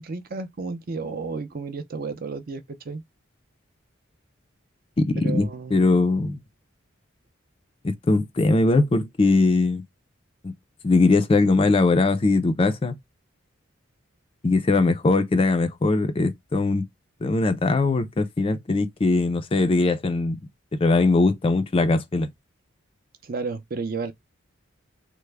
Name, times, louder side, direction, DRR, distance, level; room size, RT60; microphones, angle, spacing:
voice 1, 0.0-3.0 5.2-5.9 23.2-24.1, right 4 dB, 45° right, 0.5 m, -32 dB
voice 2, 5.0-6.4 7.8-9.8 10.4-10.5 10.8-13.0 14.4-16.9 17.2-20.4 20.8-22.3, left 3 dB, 25° left, 0.4 m, -21 dB
3.3 x 2.1 x 3.2 m
head